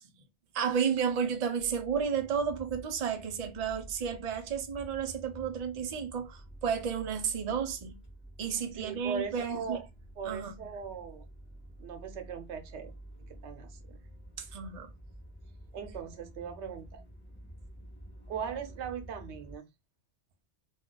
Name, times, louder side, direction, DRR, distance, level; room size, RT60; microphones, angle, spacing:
voice 1, 0.5-7.9 8.4-9.8 10.2-10.5 14.4-14.9, right 7 dB, 50° right, 0.5 m, -32 dB
sound 1, 1.6-19.6, right 1 dB, 10° left, 1.0 m, -50 dB
voice 2, 8.6-9.9 10.2-11.3 11.8-12.9 13.3-14.0 15.7-17.0 18.3-19.6, right 6 dB, 85° right, 0.9 m, -39 dB
2.3 x 2.3 x 3.7 m
omnidirectional pair, 1.1 m